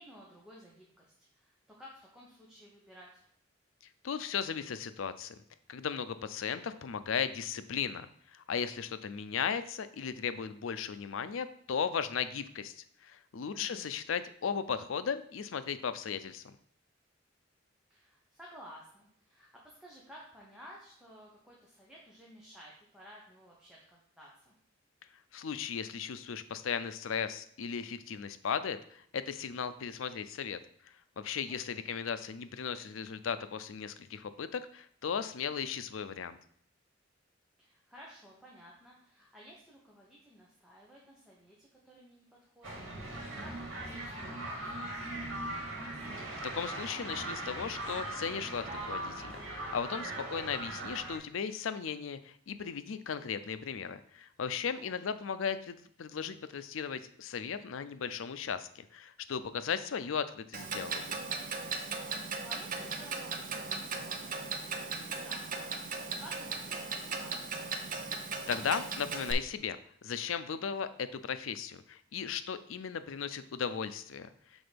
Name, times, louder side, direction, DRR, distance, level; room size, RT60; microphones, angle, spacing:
voice 1, 0.0-3.3 13.5-14.0 17.9-24.5 31.5-32.0 37.6-45.7 54.8-55.0 62.0-67.7, equal, 5° right, -5 dB, 1.1 m, -55 dB
voice 2, 4.0-5.4 5.7-16.5 25.3-30.6 30.9-36.4 46.2-61.0 68.5-74.3, left 7 dB, 85° left, 12 dB, 0.5 m, -36 dB
sound 1, 42.6-51.2, right 1 dB, 75° right, 2.0 m, -40 dB
Clock, 60.5-69.3, right 4 dB, 45° right, 0.7 m, -37 dB
6.2 x 3.8 x 5.1 m, 0.62 s
head